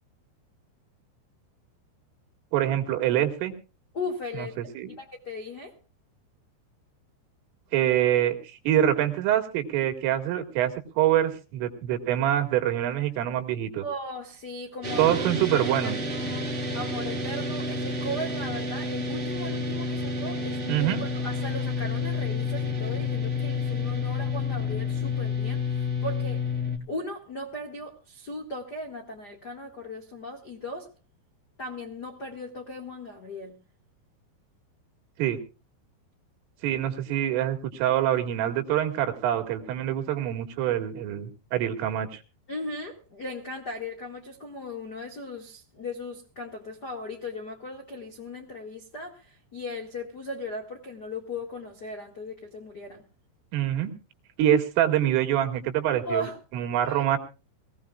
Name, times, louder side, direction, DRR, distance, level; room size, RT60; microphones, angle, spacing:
voice 1, 2.5-3.5 4.4-4.9 7.7-13.8 15.0-16.0 20.7-21.0 35.2-35.4 36.6-42.2 53.5-53.9 54.4-56.3 56.5-57.2, right 11 dB, 85° right, 4.6 m, -25 dB
voice 2, 3.9-4.7 5.0-5.7 13.8-15.2 15.8-26.5 26.9-30.9 31.6-33.6 42.5-53.0 56.0-56.4 56.8-57.0, left 1 dB, 70° left, 0.9 m, -37 dB
sound 1, 14.8-26.8, left 3 dB, 70° right, 0.6 m, -30 dB
23.5 x 16.5 x 2.4 m
omnidirectional pair, 5.6 m